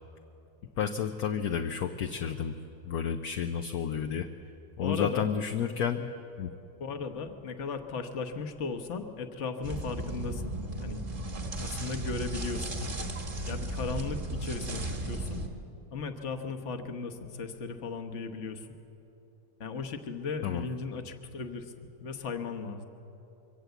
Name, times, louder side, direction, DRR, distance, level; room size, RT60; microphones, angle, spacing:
voice 1, 0.8-2.6 2.8-4.3 4.8-6.1 6.4-6.5 20.4-20.6, left 8 dB, 65° left, 6 dB, 1.0 m, -31 dB
voice 2, 4.8-5.3 6.8-11.0 11.6-13.1 13.4-15.4 15.9-18.7 19.6-21.7 22.0-22.9, left 4 dB, 45° left, 6 dB, 1.3 m, -36 dB
sound 1, 9.6-15.5, right 1 dB, 30° right, 1.4 m, -35 dB
23.5 x 17.0 x 8.2 m, 3.0 s
omnidirectional pair, 2.0 m